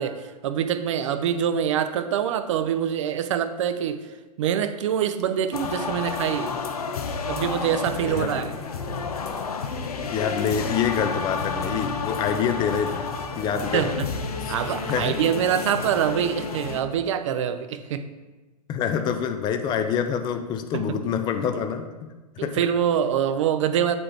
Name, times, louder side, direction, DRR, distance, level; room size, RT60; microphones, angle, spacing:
voice 1, 0.0-4.0 4.4-6.5 7.3-8.5 13.7-14.1 14.5-18.0 20.7-20.8 22.4-23.9, right 9 dB, 50° right, 10 dB, 0.5 m, -25 dB
sound 1, 5.5-16.8, left 5 dB, 65° left, 0.7 m, -31 dB
voice 2, 10.1-13.0 13.4-13.8 14.4-14.5 14.9-15.2 18.7-21.9 22.4-22.6, left 7 dB, 20° left, 7 dB, 0.5 m, -26 dB
8.4 x 4.1 x 3.3 m, 1.2 s
figure-of-eight pair, 105°, 20 cm